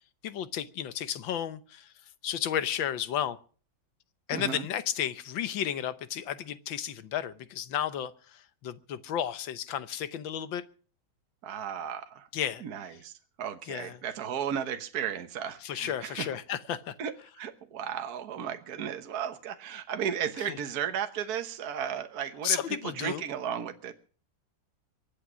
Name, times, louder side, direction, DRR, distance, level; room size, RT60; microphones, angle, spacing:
voice 1, 0.2-1.9 2.2-3.4 4.3-10.6 12.3-12.6 13.7-14.0 15.6-16.9 20.5-20.6 22.4-23.2, left 10 dB, 90° left, 1.7 m, -33 dB
voice 2, 4.3-4.7 11.4-12.3 12.6-13.1 13.4-16.3 17.0-23.9, right 8 dB, 55° right, 1.6 m, -34 dB
23.5 x 8.9 x 6.1 m
omnidirectional pair, 2.0 m